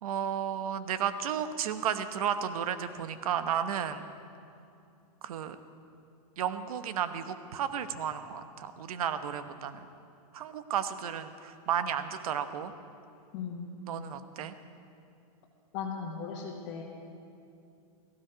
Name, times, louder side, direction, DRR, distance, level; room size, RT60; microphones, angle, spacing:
voice 1, 0.0-4.0 5.2-5.6 6.4-9.8 10.3-12.7 13.9-14.5, right 8 dB, 65° right, 10 dB, 1.1 m, -33 dB
voice 2, 13.3-13.7 14.0-14.1 15.7-16.8, left 6 dB, 35° left, -5 dB, 1.7 m, -37 dB
17.5 x 15.0 x 5.1 m, 2.6 s
supercardioid pair, 155°, 20 cm